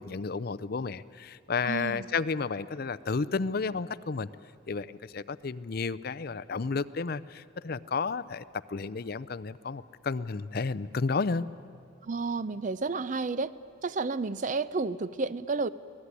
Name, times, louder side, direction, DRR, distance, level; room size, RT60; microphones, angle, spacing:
voice 1, 0.0-4.3 4.7-8.4 8.7-11.5, left 4 dB, 50° left, 17 dB, 0.5 m, -32 dB
voice 2, 1.6-2.1 12.0-13.5 13.8-15.7, right 4 dB, 40° right, 16 dB, 0.5 m, -31 dB
25.0 x 18.5 x 9.7 m, 2.4 s
head